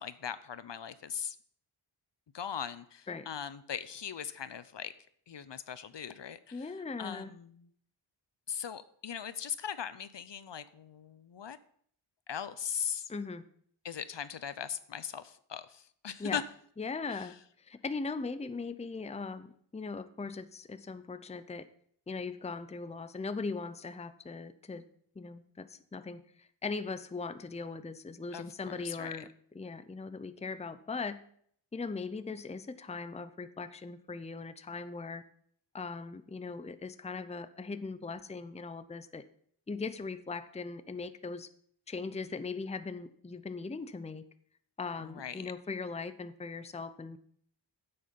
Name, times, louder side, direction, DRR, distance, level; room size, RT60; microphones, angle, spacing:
voice 1, 0.0-1.4 2.3-4.9 5.3-7.7 8.5-11.6 12.3-13.1 13.8-16.4 17.1-17.3 28.3-29.3 45.0-45.5, left 8 dB, 60° left, 14 dB, 0.7 m, -40 dB
voice 2, 6.5-7.3 13.1-13.4 16.2-16.4 16.8-21.7 22.1-24.8 25.2-29.3 29.5-31.2 31.7-35.2 35.7-39.2 39.7-41.5 41.9-44.2 44.8-47.2, left 4 dB, 15° left, 12 dB, 0.6 m, -39 dB
9.7 x 7.8 x 5.3 m, 0.63 s
wide cardioid pair, 75°, 49 cm